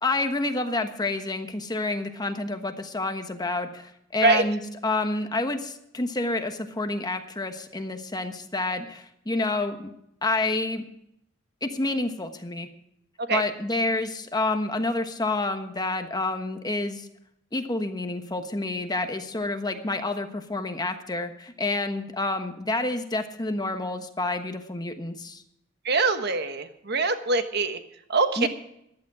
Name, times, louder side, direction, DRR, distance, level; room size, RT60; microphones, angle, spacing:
voice 1, 0.0-9.9 10.2-10.8 11.6-12.7 13.3-17.1 17.5-25.4 28.4-28.5, left 2 dB, 20° left, 7 dB, 1.2 m, -28 dB
voice 2, 25.8-27.8 28.1-28.5, right 3 dB, 60° right, 8 dB, 1.3 m, -23 dB
15.0 x 11.5 x 4.8 m, 0.77 s
head